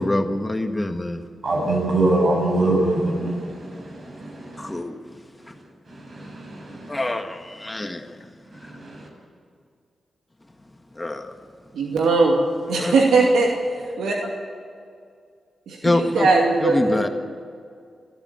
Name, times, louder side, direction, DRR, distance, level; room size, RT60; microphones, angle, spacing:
voice 1, 0.0-1.2 4.6-5.2 5.5-5.6 6.9-8.3 8.6-8.7 10.9-11.4 12.8-12.9 15.8-16.3 16.6-17.1, left 1 dB, 20° left, 6 dB, 1.6 m, -25 dB
voice 2, 1.4-4.8 6.0-7.0 8.7-9.1, right 2 dB, 60° right, 0 dB, 7.9 m, -24 dB
voice 3, 11.7-12.4 12.7-13.5 13.8-14.2 15.7-17.1, right 3 dB, 90° right, -1 dB, 2.4 m, -19 dB
28.5 x 12.5 x 8.9 m, 2.3 s
cardioid pair, 60°, 0 cm